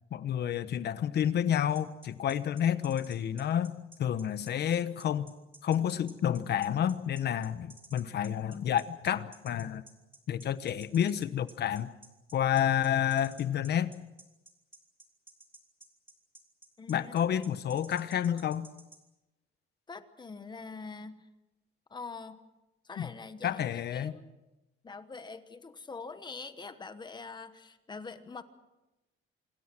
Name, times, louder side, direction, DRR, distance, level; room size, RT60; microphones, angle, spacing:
voice 1, 0.1-5.3 5.6-9.8 10.3-11.9 12.3-13.9 16.9-18.7 23.0-23.1 23.4-24.1, left 9 dB, 50° left, 13 dB, 1.1 m, -30 dB
sound 1, 1.7-19.0, right 2 dB, 10° right, 3.7 m, -54 dB
voice 2, 16.8-17.2 19.9-21.3 21.9-22.4 22.8-23.6 23.9-24.4 24.8-28.4, left 4 dB, 20° left, 11 dB, 1.1 m, -44 dB
27.0 x 23.0 x 6.1 m, 1.0 s
cardioid pair, 165°, 21 cm